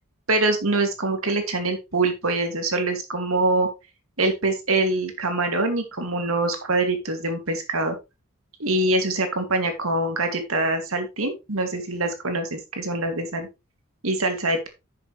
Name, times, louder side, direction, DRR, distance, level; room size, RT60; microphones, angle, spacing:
voice 1, 0.3-3.7 4.2-8.0 8.6-13.5 14.0-14.7, right 2 dB, 80° right, 6 dB, 2.4 m, -24 dB
10.0 x 6.9 x 3.3 m, 0.25 s
head